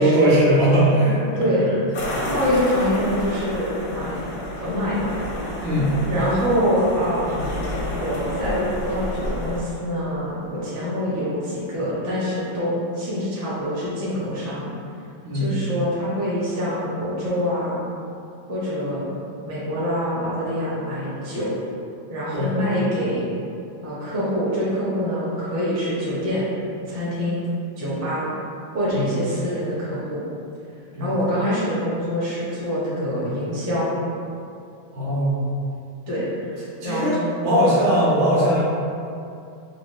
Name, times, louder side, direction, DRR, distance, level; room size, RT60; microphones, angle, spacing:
voice 1, 0.0-1.2 5.6-5.9 15.2-15.5 22.3-22.5 28.9-29.0 30.9-31.1 34.9-35.4 36.8-37.2 37.4-38.6, right 1 dB, 65° right, -6 dB, 1.2 m, -19 dB
voice 2, 1.4-1.7 2.3-4.3 4.5-5.1 6.0-7.6 7.9-14.7 15.3-17.8 18.5-19.1 19.4-21.5 22.1-23.3 23.8-26.5 26.9-27.4 27.8-28.3 28.7-30.2 31.0-33.9 36.1-37.2 37.5-37.7, equal, 20° right, -10 dB, 0.4 m, -25 dB
sound 1, 1.9-9.6, left 1 dB, 75° left, 0.9 m, -30 dB
4.8 x 2.0 x 3.4 m, 2.6 s
omnidirectional pair, 2.3 m